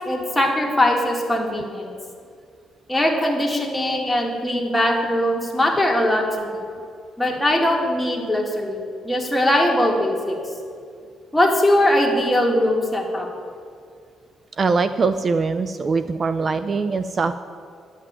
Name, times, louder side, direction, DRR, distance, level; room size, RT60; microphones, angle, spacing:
voice 1, 0.1-1.9 2.9-6.6 7.2-8.8 9.0-10.4 11.3-13.3, left 1 dB, 10° left, 0 dB, 2.1 m, -20 dB
voice 2, 14.6-17.4, right 4 dB, 40° right, 11 dB, 0.4 m, -22 dB
10.5 x 5.9 x 8.8 m, 2.3 s
cardioid pair, 90°, 0 cm